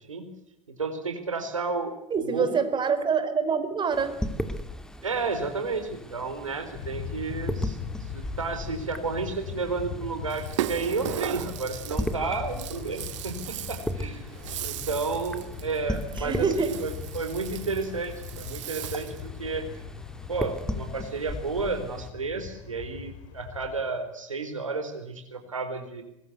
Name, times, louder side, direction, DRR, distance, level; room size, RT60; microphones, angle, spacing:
voice 1, 0.7-2.6 5.0-14.3 14.6-19.7 20.3-26.0, right 4 dB, 90° right, 6 dB, 4.1 m, -32 dB
voice 2, 2.1-4.2 16.2-16.7, right 5 dB, 30° right, 10 dB, 4.0 m, -26 dB
sound 1, 3.9-22.1, left 1 dB, 5° left, 2.6 m, -37 dB
sound 2, 6.7-23.8, left 8 dB, 60° left, 3.9 m, -40 dB
Rattle (instrument), 10.3-19.3, right 13 dB, 70° right, 1.2 m, -37 dB
24.5 x 21.0 x 8.1 m, 0.84 s
figure-of-eight pair, 75°, 16 cm